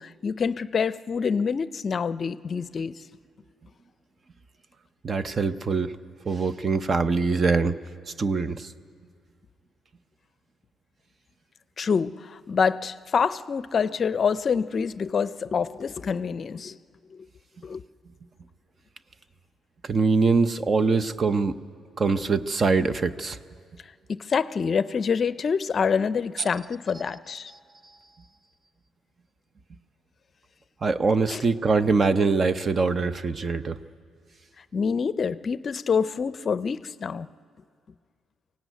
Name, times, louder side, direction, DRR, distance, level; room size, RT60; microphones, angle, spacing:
voice 1, 0.0-3.0 11.8-16.8 17.1-17.3 17.6-17.8 24.1-27.5 31.3-31.4 34.7-37.3, left 6 dB, 45° left, 15 dB, 0.5 m, -26 dB
voice 2, 5.0-5.9 6.3-7.8 8.2-8.7 19.8-21.6 22.0-23.4 30.8-33.8, right 4 dB, 40° right, 12 dB, 0.8 m, -23 dB
23.5 x 17.0 x 9.2 m, 2.1 s
cardioid pair, 90°, 0 cm